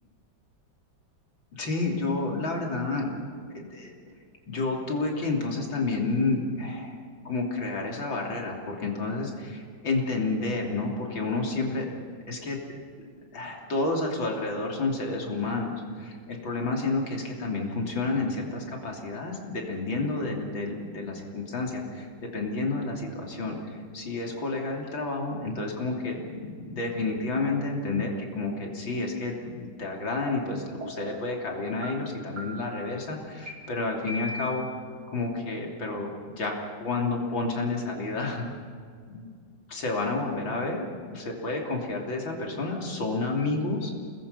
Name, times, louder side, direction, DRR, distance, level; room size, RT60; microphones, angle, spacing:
voice 1, 1.5-3.1 3.5-3.9 4.5-7.0 7.3-11.9 12.3-12.6 13.3-34.7 35.1-36.5 36.8-38.5 39.1-39.4 39.7-43.9, left 3 dB, 85° left, 0 dB, 3.8 m, -30 dB
sound 1, 30.3-30.4 30.8-31.2 31.8-31.9 32.4-32.8 33.5-33.6 34.1-34.7, equal, 55° right, 5.0 m, -37 dB
29.0 x 20.5 x 5.6 m, 2.1 s
omnidirectional pair, 2.1 m